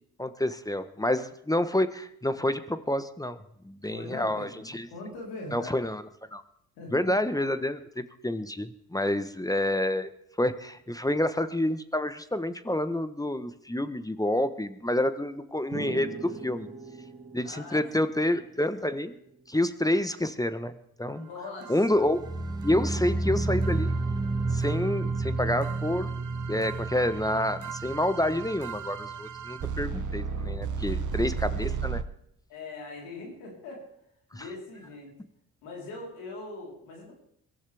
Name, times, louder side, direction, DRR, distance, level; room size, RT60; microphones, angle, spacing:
voice 1, 0.2-3.4 3.6-4.9 5.5-6.0 6.3-6.4 6.9-10.1 10.4-16.7 17.3-19.2 19.5-21.3 21.7-22.2 22.6-24.0 24.5-26.1 26.5-32.0 34.3-34.5, left 1 dB, 10° left, 12 dB, 1.1 m, -28 dB
voice 2, 3.9-5.8 6.8-7.1 17.4-17.8 21.1-21.8 30.8-31.3 32.5-33.8 34.3-35.1 35.6-37.1, left 2 dB, 80° left, -1 dB, 4.1 m, -41 dB
sound 1, 15.7-19.3, right 3 dB, 40° right, 1.9 m, -41 dB
sound 2, 21.6-32.0, right 6 dB, 55° right, 1.1 m, -36 dB
sound 3, 22.0-29.1 29.4-29.8 30.2-30.3, right 2 dB, 10° right, 1.4 m, -31 dB
22.5 x 13.5 x 3.5 m, 0.75 s
hypercardioid pair, 45°, 36 cm